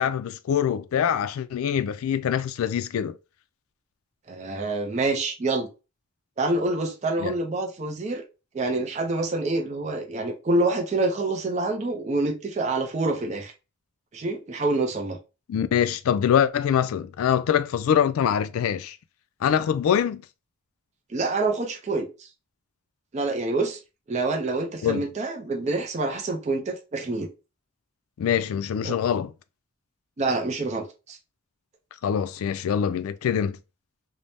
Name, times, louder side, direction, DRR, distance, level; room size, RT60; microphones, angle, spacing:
voice 1, 0.0-3.2 7.2-7.3 15.5-19.0 19.4-20.2 24.8-25.0 28.2-29.3 32.0-33.6, left 8 dB, 75° left, 0.3 m, -24 dB
voice 2, 4.3-5.7 6.4-8.2 8.5-13.5 14.1-15.2 21.1-22.1 23.1-23.8 24.1-27.3 28.8-29.0 30.2-31.2, right 2 dB, 30° right, 0.4 m, -26 dB
2.6 x 2.0 x 3.3 m
head